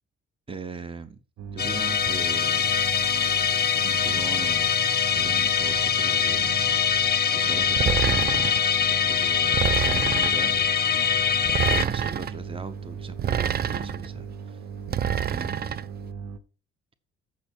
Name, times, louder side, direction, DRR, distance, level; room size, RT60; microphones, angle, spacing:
voice 1, 0.5-1.2 1.5-2.7 3.7-4.7 5.1-6.6 7.3-8.3 8.9-11.2 11.7-14.6 15.3-15.8, right 4 dB, 20° right, 0.9 m, -39 dB
sound 1, 1.4-16.4, right 6 dB, 65° right, 1.2 m, -38 dB
Musical instrument, 1.6-11.8, left 8 dB, 35° left, 0.8 m, -23 dB
sound 2, 7.8-8.6 9.5-10.5 11.5-12.3 13.2-14.1 14.9-15.9, right 9 dB, 35° right, 0.4 m, -26 dB
7.6 x 5.6 x 7.0 m
cardioid pair, 90°, 30 cm